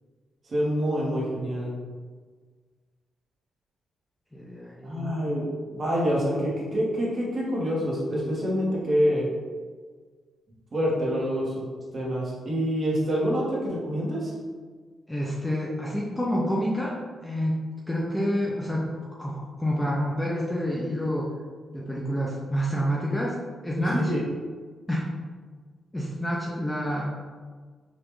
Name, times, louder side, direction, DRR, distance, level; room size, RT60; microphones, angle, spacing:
voice 1, 0.5-1.7 4.8-5.5 5.7-9.3 10.7-11.6 11.9-14.3 23.8-24.2, equal, 35° right, -5 dB, 1.2 m, -26 dB
voice 2, 4.3-5.2 15.1-21.3 21.7-23.4 23.6-24.1 24.9-25.1 25.9-27.0, equal, 10° left, -4 dB, 0.5 m, -28 dB
5.1 x 2.4 x 3.0 m, 1.5 s
wide cardioid pair, 160°, 0 cm